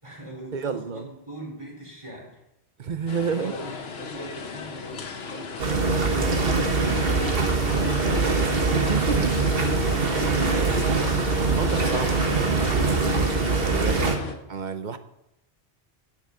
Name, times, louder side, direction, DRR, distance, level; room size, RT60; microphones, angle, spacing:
voice 1, 0.0-2.4 3.0-8.6 9.0-9.1 14.0-14.5, equal, 30° right, -1 dB, 3.5 m, -41 dB
voice 2, 0.5-1.1 2.8-3.5 8.8-9.9 10.4-11.0 11.3-13.3 13.7-14.0 14.5-15.0, right 5 dB, 50° right, 10 dB, 0.9 m, -31 dB
sound 1, 3.1-14.3, left 5 dB, 85° left, 1.2 m, -36 dB
sound 2, 5.6-14.2, right 4 dB, 70° right, 1.4 m, -23 dB
10.5 x 6.6 x 6.4 m, 0.84 s
omnidirectional pair, 1.0 m